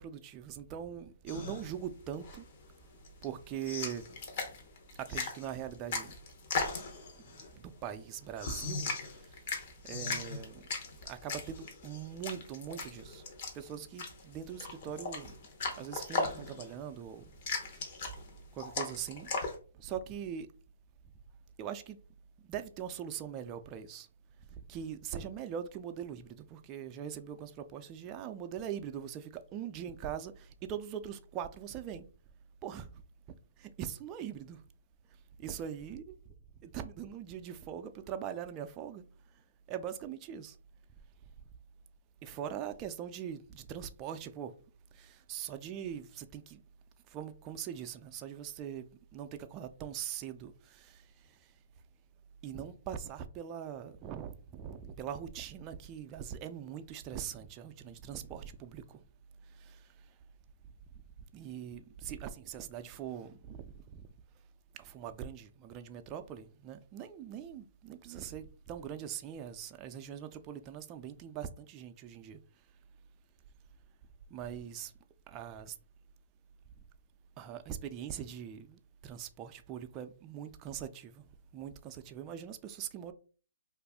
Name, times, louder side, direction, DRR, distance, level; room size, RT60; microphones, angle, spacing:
voice 1, 0.0-2.5 3.2-4.2 5.0-6.1 7.2-9.5 9.8-10.6 11.0-13.2 13.5-15.3 15.8-17.7 18.5-19.3 19.7-20.5 21.6-22.0 22.4-24.1 24.5-32.1 32.6-32.9 33.3-34.6 35.4-39.4 39.7-40.6 42.2-44.5 44.9-46.6 47.1-51.5 52.4-59.0 59.4-60.2 61.3-64.1 64.7-72.4 74.3-74.9 75.3-75.8 77.4-81.2 81.5-83.1, right 9 dB, 25° right, 0.3 m, -42 dB
sound 1, 1.3-19.5, left 4 dB, 45° left, 0.8 m, -39 dB
2.5 x 2.4 x 3.5 m
hypercardioid pair, 145°, 0 cm